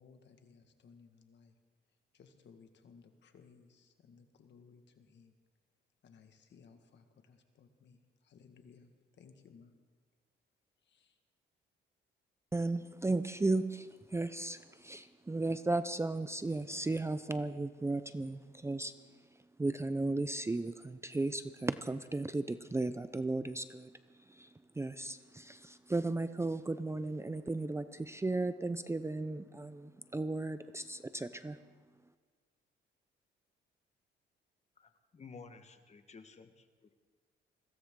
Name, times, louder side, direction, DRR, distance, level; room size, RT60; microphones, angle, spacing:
voice 1, 0.0-1.6 2.1-5.3 6.0-9.7 10.8-11.2, left 5 dB, 65° left, 6 dB, 1.7 m, -60 dB
voice 2, 12.5-31.6, right 2 dB, 15° right, 12 dB, 0.6 m, -35 dB
voice 3, 34.8-36.9, left 4 dB, 35° left, 8 dB, 1.4 m, -54 dB
21.5 x 16.5 x 3.8 m, 1.5 s
cardioid pair, 90°, 20 cm